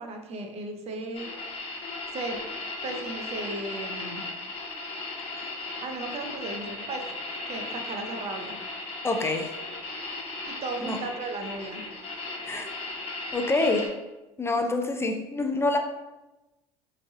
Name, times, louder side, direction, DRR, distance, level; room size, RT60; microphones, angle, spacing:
voice 1, 0.0-1.3 2.1-2.4 2.8-4.2 5.8-7.1 7.5-8.6 10.5-11.8, right 2 dB, 45° right, 4 dB, 0.7 m, -35 dB
sound 1, 1.1-13.9, left 3 dB, 45° left, 1.2 m, -36 dB
voice 2, 9.0-9.5 10.8-11.0 12.4-12.7 13.3-14.0 14.4-15.8, left 2 dB, 15° left, 4 dB, 0.5 m, -26 dB
3.6 x 3.2 x 3.6 m, 1.0 s
hypercardioid pair, 80°, 14 cm